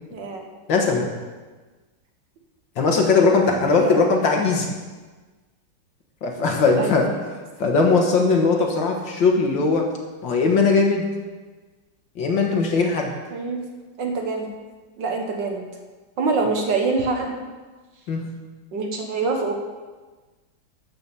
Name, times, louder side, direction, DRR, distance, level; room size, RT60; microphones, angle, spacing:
voice 1, 0.1-0.5 3.7-4.1 6.8-7.0 13.3-13.7 14.0-14.5 15.0-15.7 16.2-17.4 18.7-19.5, right 4 dB, 60° right, 3 dB, 1.9 m, -25 dB
voice 2, 0.7-1.1 2.8-4.7 6.2-7.1 7.6-9.9 10.2-11.1 12.2-13.1 18.1-18.2, left 4 dB, 60° left, 2 dB, 2.1 m, -19 dB
13.0 x 6.2 x 7.0 m, 1.3 s
omnidirectional pair, 2.3 m